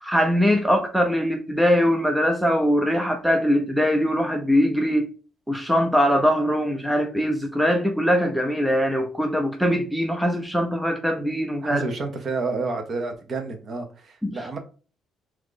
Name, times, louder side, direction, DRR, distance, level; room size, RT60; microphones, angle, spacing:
voice 1, 0.0-5.1 5.5-11.8 14.2-14.3, equal, ahead, 0.5 m, -22 dB
voice 2, 11.6-14.6, right 3 dB, 45° right, 0.8 m, -29 dB
2.9 x 2.5 x 3.7 m
cardioid pair, 120°, 0 cm